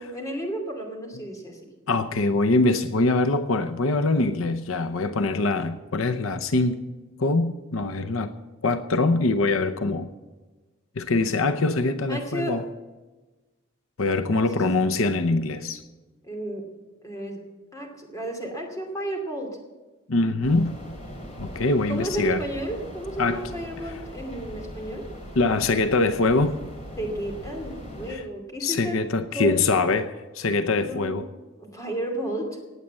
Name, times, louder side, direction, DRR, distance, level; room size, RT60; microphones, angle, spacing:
voice 1, 0.0-1.6 12.1-12.6 14.3-14.4 16.2-16.7 17.0-17.4 17.7-19.6 21.9-25.1 27.0-29.0 29.3-29.6 30.8-31.1 31.6-32.6, right 1 dB, 15° left, 2 dB, 2.6 m, -32 dB
voice 2, 1.9-6.8 7.2-8.3 8.6-10.1 11.0-12.6 14.0-15.8 20.1-20.7 21.4-22.4 23.2-23.4 25.4-26.6 28.1-28.2 28.6-31.3, left 3 dB, 80° left, 10 dB, 0.8 m, -23 dB
sound 1, 20.4-28.1, equal, 35° left, 2.8 m, -40 dB
18.5 x 8.3 x 7.6 m, 1.2 s
head